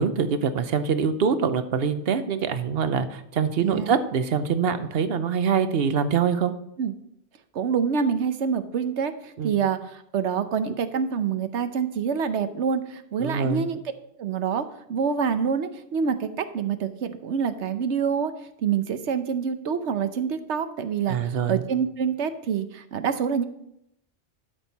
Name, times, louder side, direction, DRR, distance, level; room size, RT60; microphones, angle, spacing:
voice 1, 0.0-6.5 9.4-9.6 13.2-13.7 21.1-21.6, right 6 dB, 65° right, 11 dB, 1.0 m, -24 dB
voice 2, 7.5-9.1 9.4-13.8 14.2-14.6 14.9-18.3 18.6-21.2 21.5-23.4, right 6 dB, 80° right, 10 dB, 1.1 m, -26 dB
12.5 x 6.4 x 4.1 m, 0.76 s
omnidirectional pair, 1.2 m